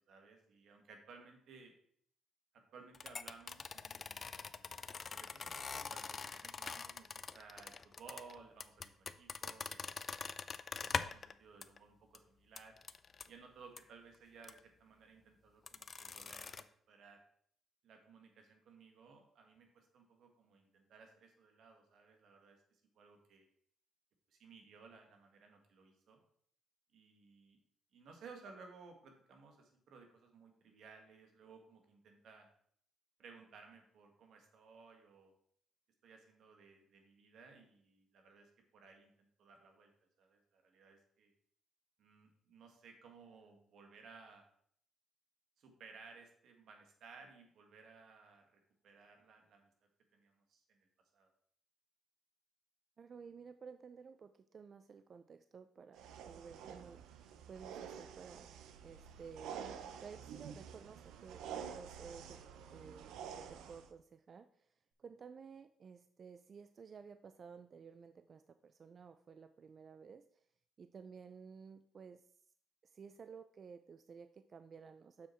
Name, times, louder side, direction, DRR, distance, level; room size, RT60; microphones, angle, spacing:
voice 1, 0.1-1.7 2.5-9.8 10.1-10.2 10.8-12.8 13.3-17.2 17.8-23.5 24.3-26.2 26.9-27.6 27.9-32.5 33.2-35.3 36.0-39.9 40.2-41.3 42.0-44.4 45.6-49.7 50.1-50.9 51.1-51.3, right 5 dB, 70° right, 4 dB, 1.8 m, -59 dB
sound 1, 2.9-11.3 11.6-11.8 12.1-12.2 12.6-13.3 13.8-13.9 14.4-14.6 15.7-16.6, left 5 dB, 40° left, 0.4 m, -43 dB
voice 2, 53.0-59.6 60.0-62.4 62.7-64.7 65.0-70.4 70.8-72.3 72.8-75.3, right 6 dB, 45° right, 10 dB, 0.4 m, -54 dB
sound 2, 55.9-63.9, right 8 dB, 90° right, 0.7 m, -49 dB
7.0 x 6.3 x 4.5 m, 0.64 s
cardioid pair, 90°, 0 cm